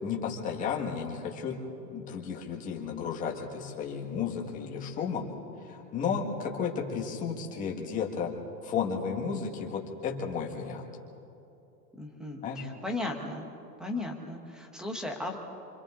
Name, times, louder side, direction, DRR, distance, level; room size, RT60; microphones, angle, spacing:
voice 1, 0.0-1.6 1.9-5.3 5.6-8.3 8.6-10.8 12.4-12.6, left 6 dB, 15° left, 0 dB, 1.7 m, -33 dB
voice 2, 12.0-13.5 13.8-15.4, left 2 dB, ahead, 3 dB, 1.0 m, -36 dB
27.5 x 26.0 x 3.8 m, 2.9 s
supercardioid pair, 170°, 47 cm